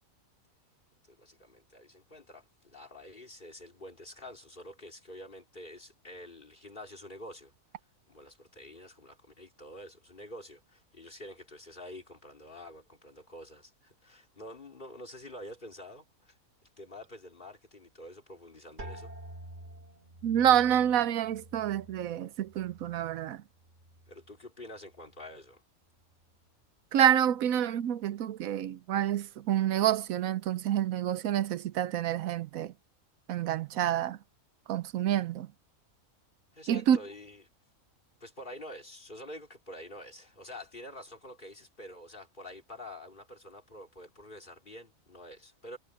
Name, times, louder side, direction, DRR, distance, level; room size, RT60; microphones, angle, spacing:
voice 1, 1.1-7.5 8.1-16.3 16.8-19.1 24.1-25.6 36.5-37.4 38.2-45.8, left 1 dB, 35° left, 3.4 m, -47 dB
sound 1, 18.8-24.4 24.7-25.4 26.0-26.4, right 1 dB, 35° right, 2.4 m, -49 dB
voice 2, 20.2-23.4 26.9-32.7 33.3-34.2 34.7-35.5 36.7-37.0, right 10 dB, 80° right, 1.1 m, -28 dB
omnidirectional pair, 1.4 m